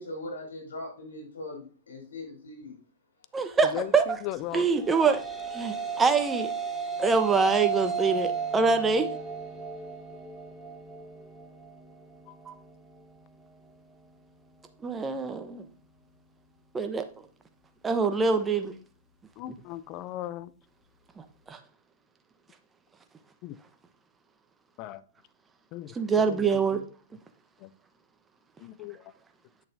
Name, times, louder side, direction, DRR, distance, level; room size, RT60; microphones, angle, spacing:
voice 1, 0.0-2.8 5.9-6.0, left 1 dB, 85° left, 3.8 m, -40 dB
voice 2, 3.3-4.0 4.5-5.2 5.5-6.5 7.0-9.1 12.5-12.6 14.8-15.6 16.7-17.0 17.8-18.7 21.2-21.6 25.9-26.8, right 5 dB, 15° right, 0.9 m, -25 dB
voice 3, 4.2-4.7 19.4-20.5 23.4-23.6 24.8-25.0 25.7-25.9 27.6-27.7 28.6-29.0, left 14 dB, 40° left, 0.5 m, -36 dB
sound 1, 4.6-13.1, right 5 dB, 5° left, 1.3 m, -34 dB
8.1 x 6.9 x 2.7 m
hypercardioid pair, 120°, 0 cm